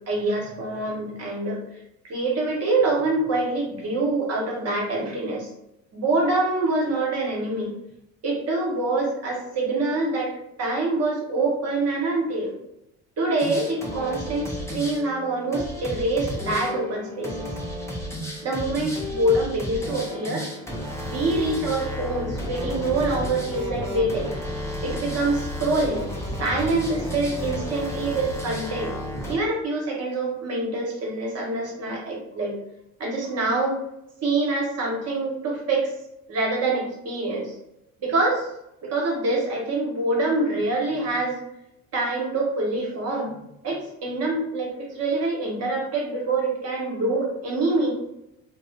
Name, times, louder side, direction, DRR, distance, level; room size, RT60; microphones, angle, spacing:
voice 1, 0.1-5.5 5.9-7.7 8.2-12.5 13.2-17.5 18.4-20.5 21.0-24.3 24.8-26.1 26.4-29.0 29.3-32.6 33.0-33.8 34.2-35.9 36.3-37.6 38.0-38.5 38.8-41.4 41.9-47.9, right 2 dB, 35° right, -2 dB, 1.1 m, -25 dB
sound 1, 13.4-29.4, left 1 dB, 5° left, 0.6 m, -32 dB
2.3 x 2.1 x 2.5 m, 0.84 s
hypercardioid pair, 60°, 42 cm